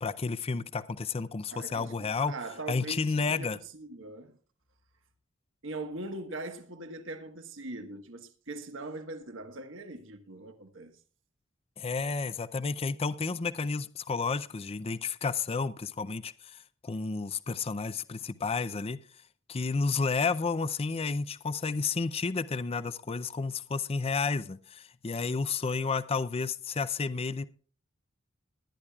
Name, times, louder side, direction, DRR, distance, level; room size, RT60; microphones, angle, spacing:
voice 1, 0.0-2.3 2.7-3.6 11.8-19.0 19.5-27.4, left 4 dB, 30° left, 0.5 m, -31 dB
voice 2, 1.5-4.4 5.6-10.9, right 2 dB, 70° right, 1.4 m, -41 dB
20.5 x 10.5 x 2.4 m
head